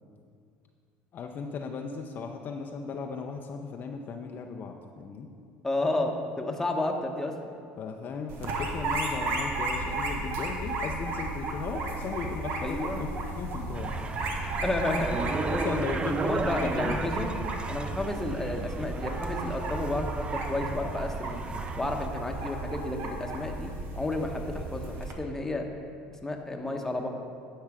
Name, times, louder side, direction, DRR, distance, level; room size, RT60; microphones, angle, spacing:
voice 1, 1.1-5.3 7.8-13.1 13.4-14.0 15.4-17.0, left 5 dB, 45° left, 3 dB, 0.6 m, -36 dB
voice 2, 5.6-7.5 12.6-13.1 14.6-15.3 16.2-17.4 17.7-21.4 21.8-25.7 26.2-27.1, left 2 dB, 10° left, 2 dB, 1.1 m, -31 dB
sound 1, 8.3-25.1, right 2 dB, 60° right, 1.4 m, -34 dB
sound 2, 13.7-22.1, right 4 dB, 25° right, 0.3 m, -34 dB
10.5 x 5.6 x 4.9 m, 2.3 s
supercardioid pair, 95°, 4 cm